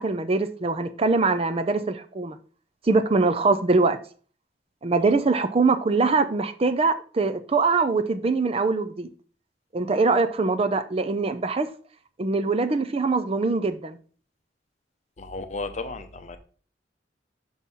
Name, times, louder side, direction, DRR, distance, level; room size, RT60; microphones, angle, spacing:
voice 1, 0.0-2.4 2.8-4.0 4.8-9.1 9.7-11.7 12.2-14.0, right 3 dB, 35° right, 0.5 m, -23 dB
voice 2, 15.2-16.4, left 3 dB, 40° left, 0.7 m, -34 dB
6.2 x 5.4 x 4.1 m
head